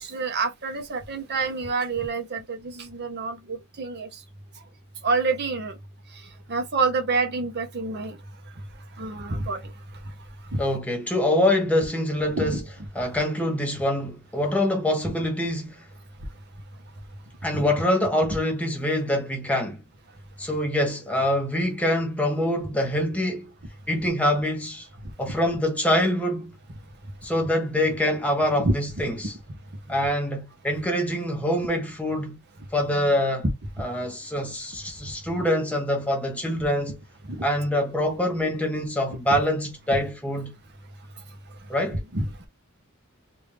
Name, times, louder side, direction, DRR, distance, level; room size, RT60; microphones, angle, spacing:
voice 1, 0.0-4.1 5.0-5.7 6.5-8.2 9.0-9.6 10.5-10.6 12.4-12.6 17.5-17.7 28.6-28.7 37.3-37.4 41.9-42.3, right 3 dB, 50° right, 0.9 m, -27 dB
voice 2, 10.6-12.6 12.9-15.8 17.4-19.8 20.4-23.5 23.9-24.9 25.2-26.5 27.2-29.4 29.9-32.4 32.7-33.5 33.8-37.0 37.4-40.5 41.7-42.0, left 1 dB, 5° left, 1.1 m, -25 dB
3.4 x 2.6 x 3.2 m
head